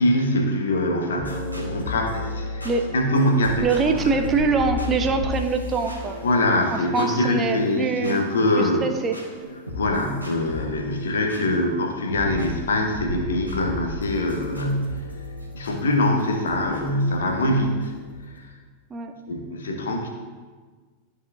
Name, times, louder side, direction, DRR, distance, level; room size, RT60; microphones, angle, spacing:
voice 1, 0.0-2.6 2.9-3.9 6.2-8.8 9.7-15.0 15.5-17.9 18.3-18.5 19.3-20.1, left 1 dB, 65° left, 2 dB, 1.2 m, -23 dB
sound 1, 1.2-18.4, left 1 dB, 90° left, 1.8 m, -34 dB
voice 2, 3.6-6.2 6.7-8.3 8.6-9.2 18.9-19.1, right 4 dB, 20° right, 5 dB, 0.6 m, -24 dB
13.0 x 4.8 x 2.7 m, 1.4 s
figure-of-eight pair, 90°, 0 cm